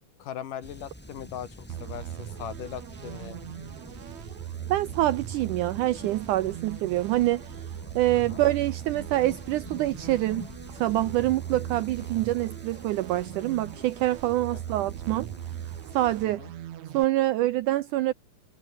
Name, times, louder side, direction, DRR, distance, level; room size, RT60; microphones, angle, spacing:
voice 1, 0.2-3.4 8.1-8.4 11.5-11.8 14.5-14.8 16.4-16.5, left 10 dB, 65° left, 3.2 m, -40 dB
sound 1, 0.6-16.2, left 1 dB, 5° left, 2.1 m, -48 dB
sound 2, 1.0-11.8, left 1 dB, 20° left, 0.6 m, -48 dB
sound 3, 1.7-17.1, right 12 dB, 60° right, 2.2 m, -39 dB
voice 2, 4.7-7.4 8.0-10.4 10.7-15.3 15.9-16.4 16.9-18.1, right 15 dB, 80° right, 1.9 m, -26 dB
omnidirectional pair, 4.3 m